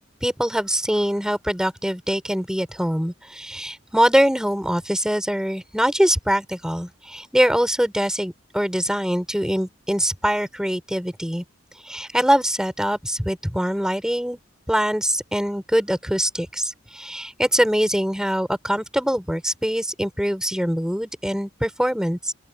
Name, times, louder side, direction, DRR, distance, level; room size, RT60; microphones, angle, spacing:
voice 1, 0.2-11.4 11.9-14.4 14.7-22.3, equal, 5° right, 3.9 m, -23 dB
open air
head